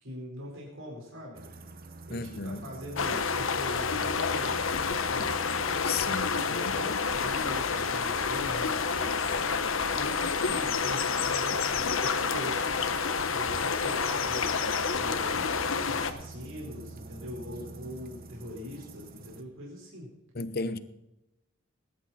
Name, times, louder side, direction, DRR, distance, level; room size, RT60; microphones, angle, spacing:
voice 1, 0.0-1.4 2.1-5.3 6.3-9.5 9.9-20.1, equal, 85° right, 4.6 m, -42 dB
sound 1, 1.3-19.4, right 3 dB, 45° right, 1.1 m, -47 dB
voice 2, 2.1-2.6 5.8-6.4 20.3-20.8, left 4 dB, 50° left, 0.9 m, -33 dB
sound 2, 3.0-16.1, left 5 dB, 90° left, 1.1 m, -29 dB
20.0 x 11.0 x 4.3 m
head